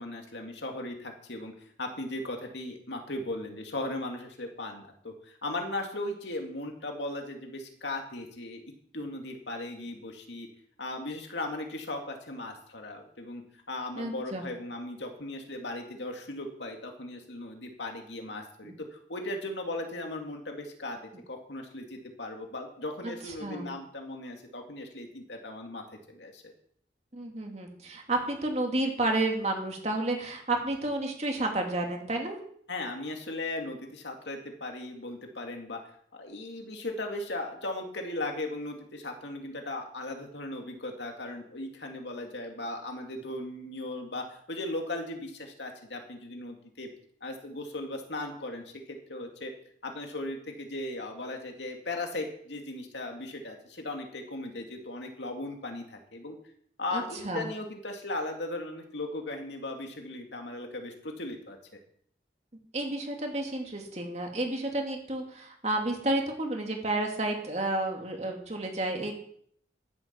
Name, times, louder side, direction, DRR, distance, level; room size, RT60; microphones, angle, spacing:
voice 1, 0.0-8.6 8.9-10.5 10.8-21.0 21.3-25.8 26.1-26.5 32.7-35.8 36.1-46.9 47.2-49.5 49.8-56.3 56.8-61.6, left 2 dB, 75° left, 3 dB, 2.4 m, -37 dB
voice 2, 13.9-14.4 18.6-18.7 23.0-23.7 27.1-32.4 56.9-57.5 62.7-69.1, right 2 dB, 35° right, 2 dB, 2.5 m, -31 dB
14.5 x 10.5 x 4.6 m, 0.64 s
head